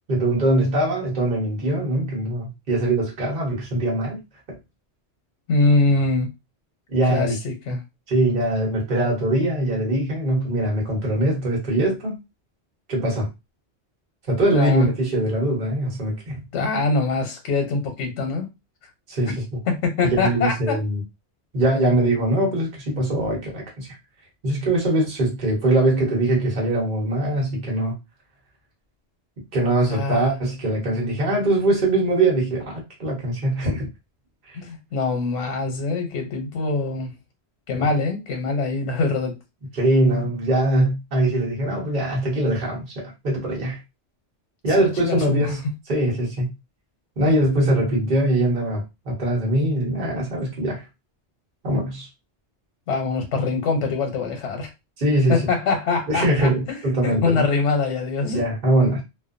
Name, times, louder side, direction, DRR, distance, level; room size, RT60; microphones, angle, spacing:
voice 1, 0.1-4.2 4.5-4.6 6.9-7.4 8.1-12.2 12.9-13.3 14.3-16.4 19.1-19.4 20.0-21.0 21.5-24.0 24.4-28.0 29.5-33.9 34.5-34.6 37.8-37.9 39.7-43.8 44.6-45.6 45.9-46.5 47.2-50.9 51.6-52.1 55.0-55.4 56.1-57.5 58.3-59.0, right 1 dB, 50° right, 1.1 m, -22 dB
voice 2, 5.5-6.3 7.1-7.8 14.5-14.9 16.5-18.5 19.3-19.4 19.7-20.8 29.9-30.4 34.5-37.1 37.7-39.4 44.8-45.5 47.2-47.3 52.9-54.7 55.3-58.4, left 3 dB, 85° left, 1.0 m, -23 dB
2.5 x 2.2 x 2.5 m
omnidirectional pair, 1.2 m